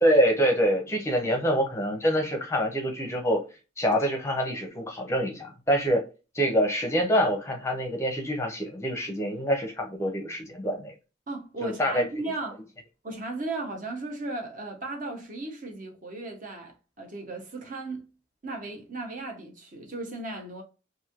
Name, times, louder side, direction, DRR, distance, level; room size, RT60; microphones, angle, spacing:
voice 1, 0.0-3.4 3.8-6.0 6.3-10.9 11.6-12.0, equal, 15° left, 0.6 m, -25 dB
voice 2, 11.3-12.6 13.0-18.0 18.4-20.6, right 2 dB, 45° right, 0.7 m, -36 dB
3.0 x 2.6 x 2.4 m
head